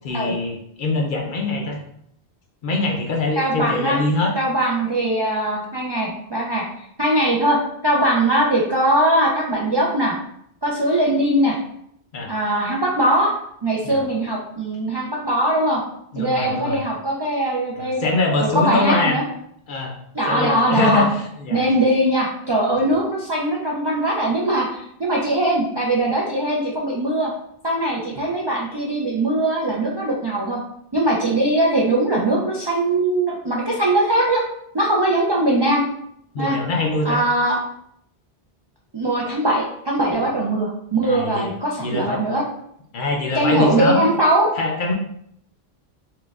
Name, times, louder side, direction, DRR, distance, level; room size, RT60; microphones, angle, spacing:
voice 1, 0.0-1.8 2.6-4.3 12.1-12.3 13.8-14.0 16.1-16.8 17.8-19.2 19.7-20.0 20.3-21.7 36.3-37.2 40.1-40.2 41.0-41.5 41.8-42.2 42.9-44.0 44.6-44.9, left 2 dB, 60° left, 1 dB, 0.7 m, -23 dB
voice 2, 3.4-4.0 4.4-6.6 7.0-10.1 10.6-11.6 12.3-13.3 13.6-15.8 16.2-18.1 18.4-19.2 20.1-21.0 21.5-27.3 27.6-30.6 30.9-34.4 34.7-35.9 36.4-36.6 37.0-37.6 38.9-42.4 43.4-44.5, right 1 dB, 45° right, -4 dB, 0.3 m, -21 dB
4.4 x 2.2 x 2.3 m, 0.72 s
omnidirectional pair, 1.0 m